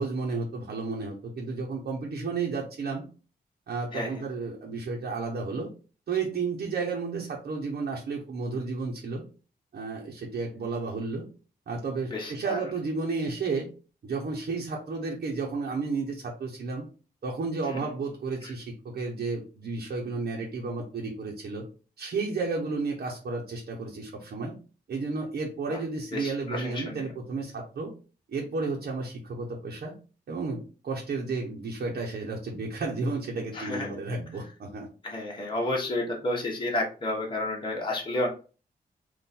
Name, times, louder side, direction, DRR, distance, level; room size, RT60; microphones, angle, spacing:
voice 1, 0.0-3.1 3.7-5.7 6.1-9.2 9.7-11.3 11.7-13.7 14.0-16.9 17.2-21.6 22.0-24.6 24.9-27.9 28.3-30.0 30.3-34.9, right 4 dB, 70° right, -2 dB, 0.9 m, -32 dB
voice 2, 12.1-12.6 17.7-17.8 25.7-25.8 26.1-27.1 33.5-33.9 35.0-38.3, left 1 dB, 30° left, -2 dB, 1.1 m, -31 dB
3.7 x 2.5 x 4.2 m, 0.35 s
wide cardioid pair, 145°, 16 cm